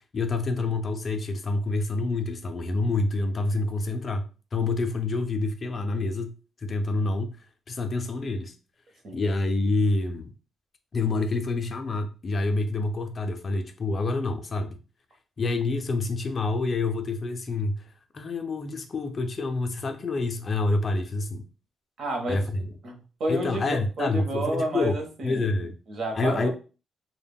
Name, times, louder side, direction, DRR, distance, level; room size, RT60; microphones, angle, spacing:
voice 1, 0.1-6.3 6.6-7.4 7.7-8.5 9.1-10.3 10.9-14.8 15.4-17.9 18.1-21.4 22.3-22.7 23.3-25.0 25.2-25.7 26.2-26.5, left 3 dB, 35° left, 0.3 m, -27 dB
voice 2, 22.0-22.5 22.8-26.5, right 1 dB, 50° right, 0.7 m, -31 dB
2.1 x 2.0 x 3.4 m
cardioid pair, 150°, 0 cm